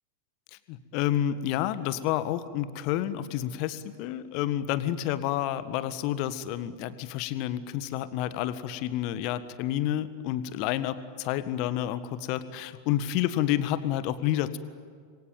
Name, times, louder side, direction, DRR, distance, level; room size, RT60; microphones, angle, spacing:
voice 1, 0.7-14.6, left 12 dB, 45° left, 13 dB, 1.7 m, -29 dB
27.5 x 23.5 x 9.2 m, 2.1 s
figure-of-eight pair, 90°, 0 cm